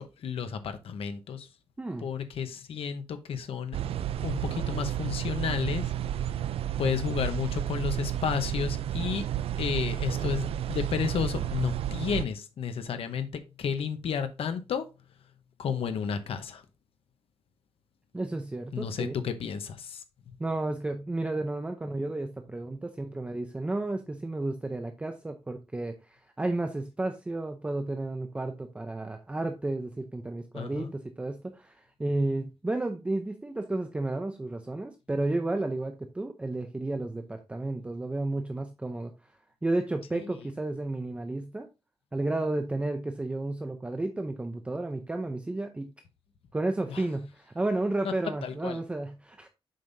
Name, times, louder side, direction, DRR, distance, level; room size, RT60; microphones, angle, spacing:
voice 1, 0.0-1.5 2.0-3.8 4.2-5.8 6.8-9.3 9.6-13.3 13.6-14.8 15.6-16.6 18.7-20.0 30.5-30.9 40.1-40.2 46.9-47.0 48.4-48.8, left 7 dB, 70° left, 0.9 m, -32 dB
sound 1, 3.7-12.3, right 11 dB, 75° right, 0.4 m, -31 dB
voice 2, 18.1-19.1 20.4-39.1 39.6-41.7 42.1-45.9 46.5-49.5, right 2 dB, 10° right, 0.5 m, -32 dB
7.6 x 5.5 x 2.6 m
wide cardioid pair, 160°, 10 cm